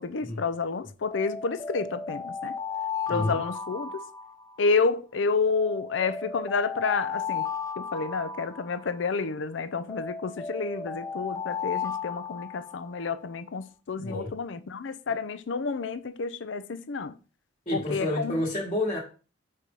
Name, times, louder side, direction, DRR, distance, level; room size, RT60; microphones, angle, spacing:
voice 1, 0.0-2.5 3.1-4.0 4.6-7.5 7.8-17.2 17.7-18.4, left 4 dB, 70° left, 0.5 m, -30 dB
Alarm, 1.1-4.8 5.5-9.2 9.9-13.1, left 5 dB, 15° left, 0.6 m, -35 dB
voice 2, 3.1-3.4 14.0-14.3 17.7-19.0, left 1 dB, 35° left, 1.3 m, -29 dB
5.0 x 4.4 x 5.3 m
head